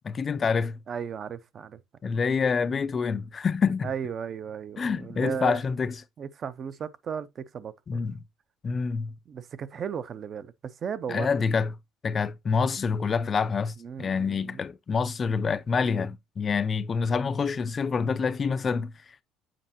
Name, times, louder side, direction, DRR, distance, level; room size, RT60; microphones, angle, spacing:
voice 1, 0.0-0.8 2.0-3.9 4.8-5.9 7.9-8.2 8.6-9.1 11.1-11.7 12.0-18.9, left 5 dB, 25° left, 0.3 m, -27 dB
voice 2, 0.9-2.1 3.8-5.6 6.2-8.0 9.3-11.3 13.8-14.6, right 7 dB, 35° right, 0.5 m, -35 dB
7.6 x 5.0 x 2.8 m
cardioid pair, 140°, 0 cm